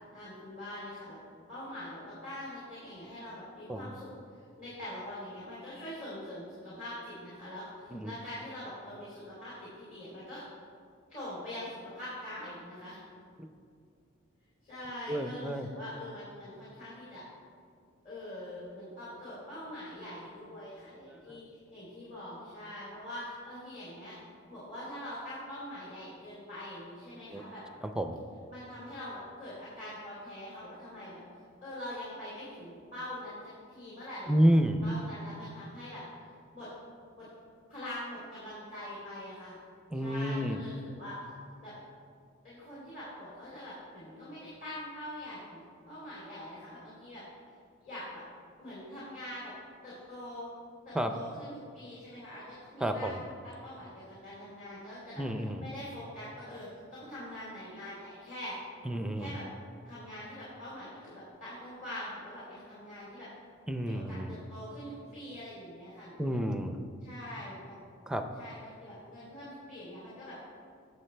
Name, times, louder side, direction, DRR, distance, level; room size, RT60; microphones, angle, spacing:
voice 1, 0.1-1.2 1.5-4.1 4.6-10.4 11.1-13.0 14.6-17.2 18.0-24.2 24.5-27.6 28.5-31.2 31.6-33.4 33.7-36.0 36.5-36.7 37.2-37.3 37.7-39.6 40.0-41.3 41.6-41.8 42.4-45.6 45.9-47.2 47.8-48.2 48.6-49.5 49.8-50.5 50.8-53.1 53.4-55.2 55.6-58.6 59.2-59.4 59.8-63.3 63.8-66.4 67.0-67.7 68.4-70.4, left 1 dB, 40° left, -9 dB, 3.2 m, -43 dB
voice 2, 15.1-15.7 21.1-21.4 27.3-27.4 27.8-28.2 34.3-34.8 39.9-40.6 50.9-51.1 52.8-53.2 55.2-55.7 58.8-59.3 63.7-64.4 66.2-66.8 68.1-68.3, equal, 5° right, 7 dB, 0.5 m, -30 dB
19.0 x 7.2 x 3.3 m, 2.3 s
head